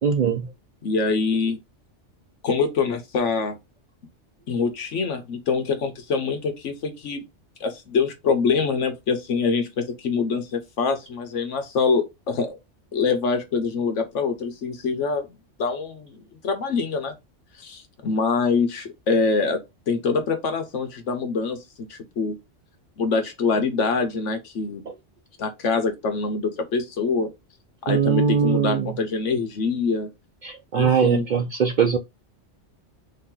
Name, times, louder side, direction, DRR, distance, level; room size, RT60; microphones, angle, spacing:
voice 1, 0.0-0.5 27.9-28.9 30.4-32.0, right 6 dB, 55° right, 0.5 m, -21 dB
voice 2, 0.8-1.6 2.4-3.6 4.5-7.2 7.6-12.5 12.9-15.3 15.6-17.1 17.6-19.6 19.9-22.4 23.0-24.8 25.4-27.3 27.8-30.1 30.7-31.2, left 4 dB, 80° left, 1.3 m, -24 dB
3.7 x 2.9 x 3.8 m
omnidirectional pair, 1.3 m